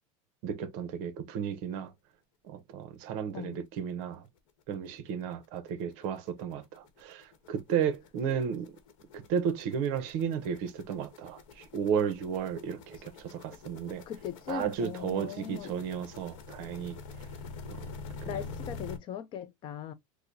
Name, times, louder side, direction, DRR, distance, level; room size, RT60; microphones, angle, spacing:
voice 1, 0.4-1.9 2.4-4.3 4.7-8.8 9.1-14.0 14.5-17.0 17.6-17.9 18.2-18.5, right 7 dB, 55° right, 0.7 m, -33 dB
sound 1, 3.5-3.6 4.0-4.1 4.4-19.0, left 4 dB, 85° left, 1.0 m, -47 dB
voice 2, 14.1-15.7 18.3-19.9, left 9 dB, 30° left, 0.4 m, -39 dB
4.7 x 2.1 x 2.6 m
supercardioid pair, 160°, 16 cm